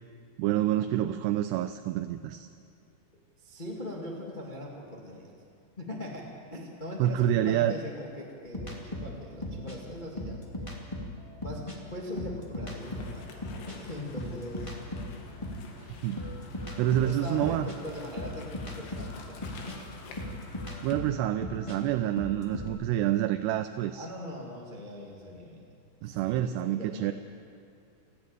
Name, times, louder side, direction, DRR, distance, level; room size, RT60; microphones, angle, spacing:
voice 1, 0.4-2.5 7.0-7.7 15.8-16.2 16.8-17.7 20.8-24.1 26.0-27.1, right 12 dB, 80° right, 9 dB, 2.6 m, -28 dB
voice 2, 3.1-5.3 5.8-10.4 11.4-13.3 13.7-14.7 17.0-19.8 20.1-20.2 23.9-25.7 26.0-27.1, left 1 dB, 60° left, -2 dB, 0.5 m, -41 dB
sound 1, 8.5-11.8 12.1-15.7 16.2-22.7, left 1 dB, 15° left, 1.0 m, -38 dB
sound 2, 12.8-20.9, left 4 dB, 75° left, 4.1 m, -48 dB
29.0 x 10.5 x 9.0 m, 2.4 s
omnidirectional pair, 5.0 m